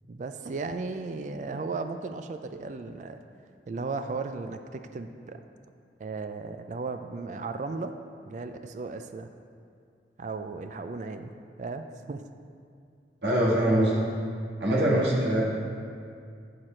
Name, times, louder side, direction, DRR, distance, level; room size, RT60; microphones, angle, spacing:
voice 1, 0.1-3.2 3.7-5.4 6.0-8.0 8.3-9.3 10.2-11.3 11.6-12.2 14.7-15.1, right 3 dB, 40° right, 8 dB, 0.3 m, -35 dB
voice 2, 13.2-14.0 14.6-15.4, right 1 dB, 70° right, -4 dB, 1.6 m, -23 dB
9.6 x 4.7 x 4.3 m, 2.3 s
head